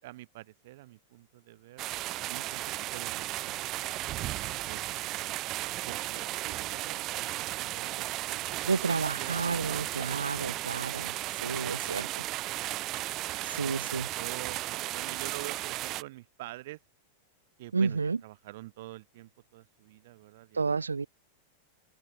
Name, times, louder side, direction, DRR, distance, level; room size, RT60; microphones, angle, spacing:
voice 1, 0.0-1.8 2.3-3.7 4.7-5.2 5.9-9.4 9.6-10.4 11.2-12.9 13.6-16.8 17.6-20.8, right 18 dB, 55° right, 4.2 m, -47 dB
sound 1, 1.8-16.0, right 17 dB, 35° right, 0.8 m, -35 dB
voice 2, 8.6-12.2 13.3-14.1 17.7-18.2 20.5-21.1, right 4 dB, 75° right, 0.8 m, -31 dB
open air
figure-of-eight pair, 90°, 0 cm